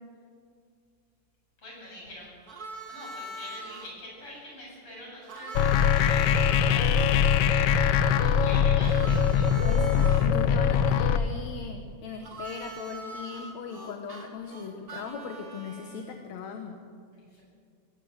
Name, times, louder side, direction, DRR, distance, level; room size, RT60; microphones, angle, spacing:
voice 1, 1.6-2.6 2.9-7.0 7.5-9.6 17.1-17.4, left 1 dB, 45° left, -4 dB, 8.9 m, -45 dB
Harmonica, 2.5-3.9 5.3-10.3 12.2-16.2, right 3 dB, 35° right, 2.0 m, -42 dB
sound 1, 5.5-11.2, left 8 dB, 85° left, 1.3 m, -22 dB
voice 2, 9.6-16.8, left 6 dB, 65° left, 5 dB, 2.3 m, -38 dB
23.0 x 16.0 x 8.1 m, 2.2 s
omnidirectional pair, 3.7 m